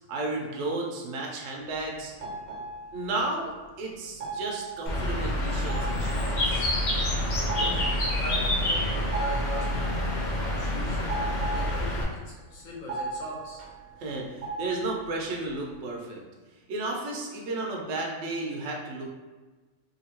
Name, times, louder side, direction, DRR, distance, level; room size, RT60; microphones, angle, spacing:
voice 1, 0.1-2.1 2.9-6.7 14.0-16.2 16.7-19.1, right 2 dB, 65° right, -1 dB, 0.8 m, -33 dB
sound 1, 1.6-1.8 2.1-3.6 3.9-4.0 4.2-10.3 10.6-15.8, right 2 dB, 90° right, 1.1 m, -37 dB
Bird, 4.9-12.0, left 1 dB, 50° left, 0.5 m, -27 dB
voice 2, 7.5-9.7 10.0-11.0 11.5-12.0 12.2-13.6, left 2 dB, 70° left, -4 dB, 1.2 m, -40 dB
2.8 x 2.6 x 2.8 m, 1.3 s
omnidirectional pair, 1.5 m